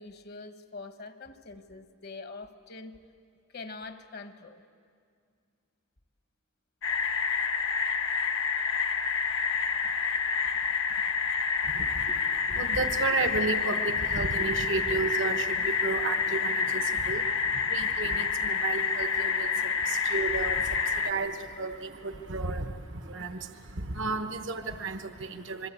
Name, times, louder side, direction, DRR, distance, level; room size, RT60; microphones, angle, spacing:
voice 1, 0.0-2.9 3.5-4.6 9.8-9.9 12.1-12.2, left 3 dB, 55° left, 8 dB, 1.3 m, -44 dB
sound 1, 6.8-21.1, left 6 dB, 80° left, 1.3 m, -28 dB
voice 2, 11.6-12.2 12.5-25.7, right 3 dB, 70° right, 7 dB, 1.1 m, -33 dB
27.5 x 22.5 x 8.4 m, 2.2 s
head